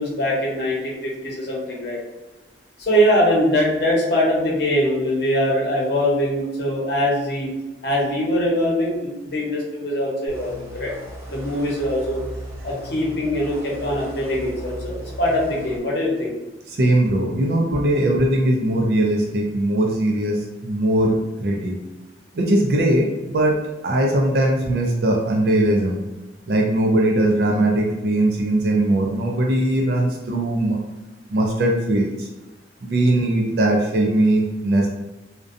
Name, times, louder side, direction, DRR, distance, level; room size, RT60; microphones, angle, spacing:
voice 1, 0.0-2.0 2.8-7.5 7.8-10.9 11.3-12.2 12.6-16.3, equal, 70° left, -3 dB, 0.8 m, -22 dB
sound 1, 10.3-15.8, equal, 15° right, 0.6 m, -36 dB
voice 2, 16.7-21.8 22.3-23.6 23.8-26.0 26.5-30.8 31.3-32.3 32.8-34.9, right 1 dB, 60° right, 0 dB, 0.4 m, -20 dB
2.5 x 2.1 x 2.4 m, 1.1 s
head